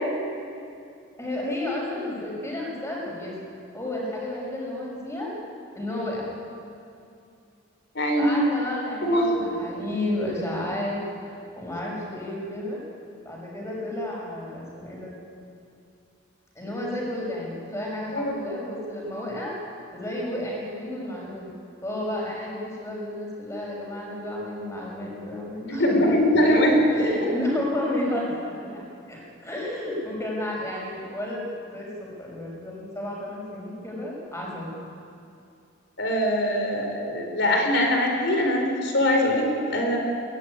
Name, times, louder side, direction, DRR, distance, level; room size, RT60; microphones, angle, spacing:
voice 1, 1.2-3.3 3.7-5.3 5.7-6.3 8.2-12.8 13.2-15.2 16.5-19.6 19.9-21.5 21.8-28.8 29.1-34.8, left 1 dB, 15° left, -3 dB, 6.2 m, -31 dB
voice 2, 7.9-8.4 9.0-9.4 18.1-18.4 25.7-26.8 36.0-40.0, equal, 55° left, 2 dB, 4.6 m, -22 dB
22.0 x 17.5 x 9.8 m, 2.5 s
head